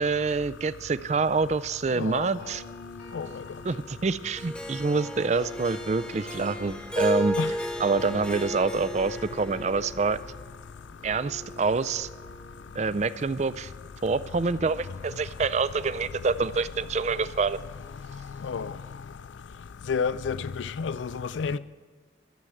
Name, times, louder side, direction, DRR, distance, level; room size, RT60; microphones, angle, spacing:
voice 1, 0.0-2.6 3.7-7.4 7.8-10.2 11.0-12.1 12.8-13.7 14.0-17.6, right 4 dB, 35° right, 0.4 m, -26 dB
sound 1, 2.4-10.5 10.8-15.7, left 1 dB, 65° left, 2.0 m, -49 dB
Harp, 4.4-10.7, equal, 5° left, 1.1 m, -34 dB
voice 2, 19.9-21.6, left 5 dB, 85° left, 0.4 m, -29 dB
13.0 x 7.7 x 9.1 m
head